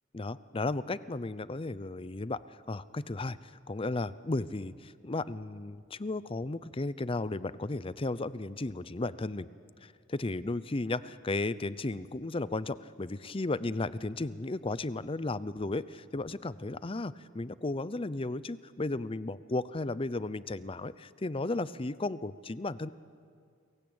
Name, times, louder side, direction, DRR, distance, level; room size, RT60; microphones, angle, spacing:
voice 1, 0.1-2.4 2.7-3.4 3.7-9.5 9.8-22.9, left 2 dB, 30° left, 17 dB, 0.6 m, -34 dB
30.0 x 22.5 x 8.8 m, 2.2 s
head